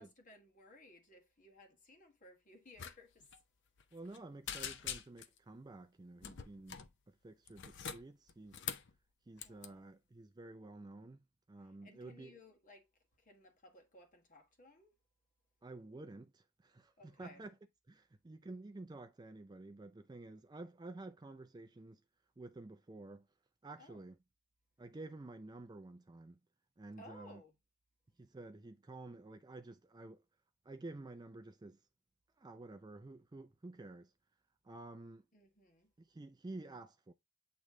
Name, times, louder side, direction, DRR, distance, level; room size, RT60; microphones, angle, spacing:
voice 1, 0.0-3.4 9.4-9.9 11.6-15.0 17.0-17.4 23.8-24.1 27.0-27.6 35.3-35.9, left 1 dB, 35° left, 1.5 m, -60 dB
sound 1, 2.8-3.0 3.2-3.4 3.8-4.2 4.5-5.4 6.2-6.9 7.5-8.9 9.4-9.7, left 8 dB, 55° left, 0.6 m, -44 dB
voice 2, 3.9-6.8 7.1-8.6 9.3-12.4 15.6-17.5 17.9-22.0 22.4-23.3 23.6-24.2 24.8-26.4 26.8-27.4 28.2-30.2 30.6-31.8 32.4-34.1 34.6-35.2 36.0-37.1, right 2 dB, 20° right, 0.4 m, -51 dB
8.2 x 3.2 x 3.6 m
head